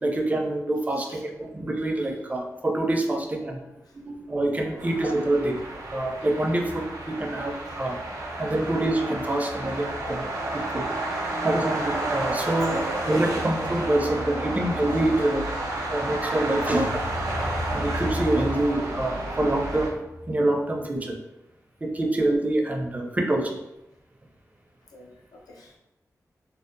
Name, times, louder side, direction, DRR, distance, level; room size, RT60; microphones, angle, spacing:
voice 1, 0.0-3.6 4.0-5.6 5.9-8.0 8.4-10.3 10.5-11.0 11.4-12.8 13.1-15.5 15.7-16.9 17.7-21.2 21.8-23.6, right 1 dB, 25° right, 2 dB, 0.4 m, -26 dB
voice 2, 3.5-4.0 4.6-4.7 7.7-7.8 12.6-12.8 16.3-16.4 24.9-25.8, left 2 dB, 90° left, 1 dB, 0.4 m, -50 dB
sound 1, 4.8-19.9, right 1 dB, 75° right, 0.6 m, -30 dB
2.6 x 2.1 x 2.5 m, 0.90 s
wide cardioid pair, 80°, 6 cm